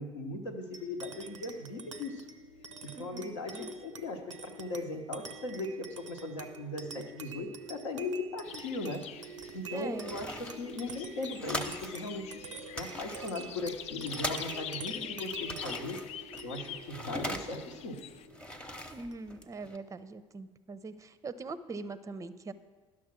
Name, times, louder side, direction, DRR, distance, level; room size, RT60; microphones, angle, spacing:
voice 1, 0.0-2.3 2.8-12.4 12.7-16.0 16.4-18.0, left 2 dB, 75° left, 4 dB, 1.0 m, -38 dB
sound 1, 0.7-19.6, right 4 dB, 90° right, 0.5 m, -47 dB
voice 2, 2.9-3.7 9.7-10.1 18.9-22.5, right 3 dB, 20° right, 14 dB, 0.5 m, -42 dB
sound 2, 8.4-18.3, left 10 dB, 45° left, 0.4 m, -45 dB
sound 3, 9.4-12.0 12.3-12.4 12.6-14.9 15.2-17.8 18.2-19.8, equal, 5° left, 0.8 m, -41 dB
11.0 x 6.3 x 5.9 m, 1.3 s
figure-of-eight pair, 60°, 15 cm